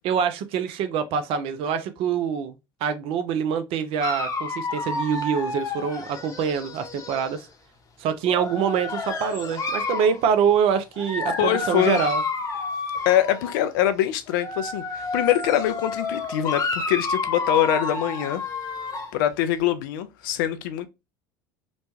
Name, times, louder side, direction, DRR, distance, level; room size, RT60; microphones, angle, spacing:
voice 1, 0.0-2.5 2.8-7.5 8.0-12.2, right 7 dB, 55° right, 0.5 m, -25 dB
Dog, 4.0-7.4 8.2-10.2 11.0-13.6 14.3-19.2, left 3 dB, 30° left, 0.8 m, -30 dB
voice 2, 11.4-12.0 13.1-18.4 19.1-20.9, left 11 dB, 70° left, 0.4 m, -24 dB
3.0 x 2.1 x 2.7 m
hypercardioid pair, 75°, 12 cm